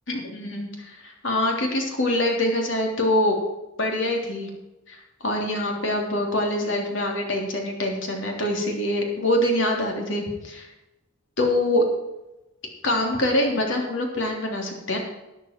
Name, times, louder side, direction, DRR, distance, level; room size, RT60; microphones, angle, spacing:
voice 1, 0.1-3.4 3.8-4.5 4.9-10.7 11.4-11.8 12.8-15.0, left 1 dB, 65° left, 1 dB, 3.3 m, -24 dB
12.5 x 10.5 x 4.6 m, 0.98 s
head